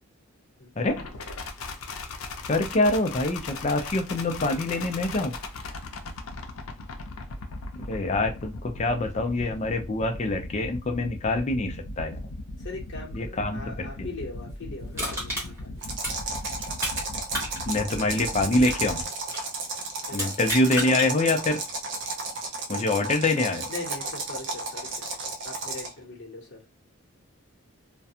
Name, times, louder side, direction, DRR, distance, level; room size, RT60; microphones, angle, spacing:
sound 1, 0.8-19.0, left 2 dB, 80° left, 0.6 m, -38 dB
voice 1, 2.5-5.3 7.7-12.2 13.1-14.1 17.7-19.0 20.1-21.6 22.7-23.7, left 2 dB, 30° left, 0.4 m, -25 dB
voice 2, 12.6-15.9 20.1-20.3 23.7-25.1 25.4-26.6, left 2 dB, 55° left, 0.8 m, -40 dB
Crushing, 14.9-17.0 17.3-19.5 20.1-21.1 21.6-21.7, equal, 10° right, 1.1 m, -32 dB
sound 2, 15.8-26.0, right 3 dB, 55° right, 0.6 m, -33 dB
2.4 x 2.2 x 2.7 m
head